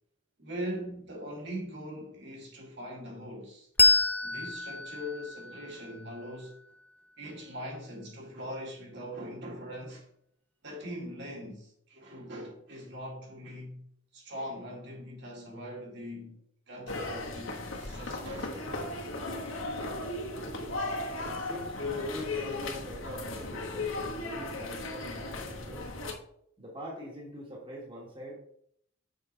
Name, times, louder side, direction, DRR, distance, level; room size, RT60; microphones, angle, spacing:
voice 1, 0.4-3.7 4.2-6.6 7.2-10.1 10.6-13.9 14.1-16.4 16.7-18.7, equal, 60° right, 2.5 m, -41 dB
Bell, 3.8-6.9, left 3 dB, 10° left, 0.5 m, -28 dB
sound 1, 16.9-26.1, left 2 dB, 85° left, 1.4 m, -36 dB
voice 2, 21.2-25.9 26.6-28.3, equal, 25° right, 1.7 m, -43 dB
6.8 x 5.8 x 4.1 m
head